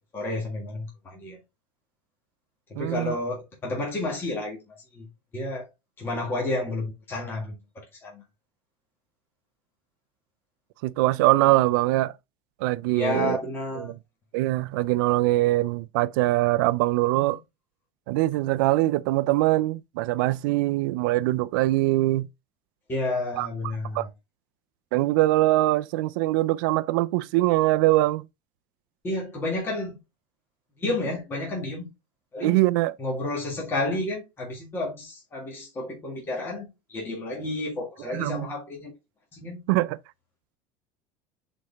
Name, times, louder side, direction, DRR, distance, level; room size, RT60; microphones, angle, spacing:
voice 1, 0.1-1.4 2.7-5.7 6.0-8.2 12.9-13.9 17.2-17.4 22.9-24.1 29.0-30.0 30.8-31.9 32.3-32.7 33.0-38.9 39.3-39.6, left 2 dB, 20° left, 1.9 m, -31 dB
voice 2, 2.8-3.1 10.8-12.1 12.6-13.4 13.8-13.9 14.3-17.4 18.1-22.3 23.4-23.5 23.9-24.0 24.9-28.2 32.4-32.9 38.1-38.5 39.7-40.0, right 18 dB, 80° right, 0.5 m, -22 dB
6.4 x 4.2 x 3.5 m
cardioid pair, 160°, 11 cm